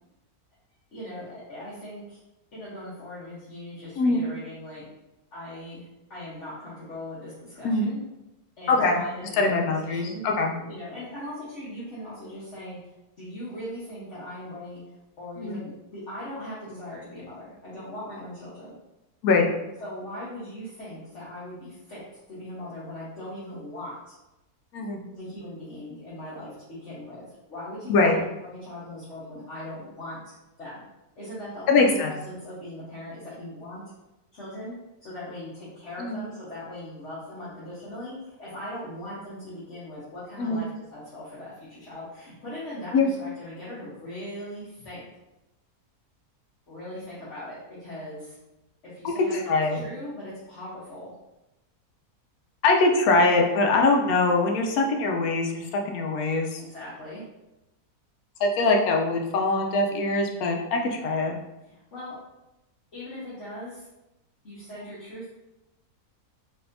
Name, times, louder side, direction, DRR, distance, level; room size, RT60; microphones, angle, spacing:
voice 1, 0.9-2.2 2.5-4.9 5.3-8.0 8.6-10.2 10.6-18.8 19.8-22.0 22.3-24.1 25.1-30.8 31.2-33.8 34.3-34.7 35.0-45.1 46.7-48.3 48.9-51.1 56.6-57.2 61.6-62.2 62.9-63.9 64.4-65.3, left 1 dB, 55° left, -11 dB, 1.3 m, -39 dB
voice 2, 8.7-9.0 9.4-10.5 15.4-15.6 19.2-19.5 24.7-25.0 27.9-28.2 31.7-32.1 36.0-36.2 40.4-40.6 42.9-43.1 49.3-49.8 52.6-56.6 58.4-61.4, left 3 dB, 75° left, 1 dB, 1.1 m, -22 dB
4.1 x 2.7 x 2.6 m, 0.94 s
omnidirectional pair, 1.6 m